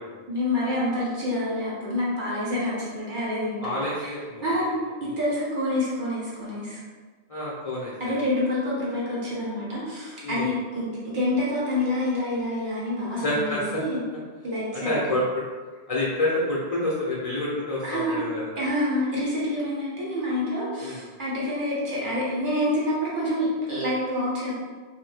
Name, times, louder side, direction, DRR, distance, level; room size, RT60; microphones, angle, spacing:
voice 1, 0.3-4.1 4.4-6.8 8.0-14.0 14.4-15.2 17.8-18.2 18.6-24.5, left 1 dB, 55° right, -7 dB, 1.1 m, -27 dB
voice 2, 3.6-4.4 5.1-5.2 7.3-8.1 10.2-10.5 13.2-13.6 14.7-15.2 15.9-18.5 20.8-21.0, left 1 dB, 40° left, -7 dB, 0.6 m, -28 dB
2.7 x 2.6 x 3.3 m, 1.4 s
omnidirectional pair, 1.0 m